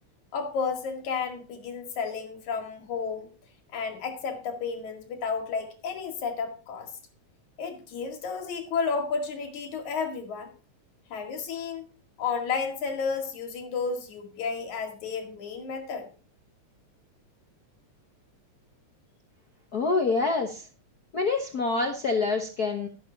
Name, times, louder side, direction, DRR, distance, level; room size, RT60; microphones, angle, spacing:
voice 1, 0.3-3.3 3.7-6.9 7.6-10.5 11.1-11.9 12.2-16.1, left 5 dB, 80° left, 4 dB, 3.5 m, -32 dB
voice 2, 19.7-20.7 21.1-22.9, left 3 dB, 55° left, 3 dB, 1.0 m, -26 dB
12.0 x 11.5 x 2.8 m, 0.36 s
omnidirectional pair, 3.3 m